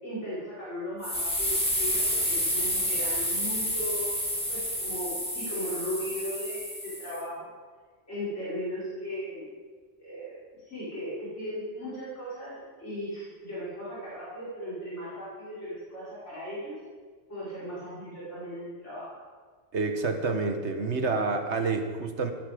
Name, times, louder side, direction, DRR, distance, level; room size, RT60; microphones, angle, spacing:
voice 1, 0.0-4.1 4.5-7.5 8.1-9.5 10.0-16.8 17.3-19.2, equal, 75° left, -10 dB, 5.6 m, -37 dB
sound 1, 1.0-7.2, equal, 5° left, 2.4 m, -29 dB
voice 2, 19.7-22.3, right 3 dB, 70° right, 6 dB, 1.6 m, -28 dB
18.0 x 11.0 x 5.1 m, 1.5 s
omnidirectional pair, 1.2 m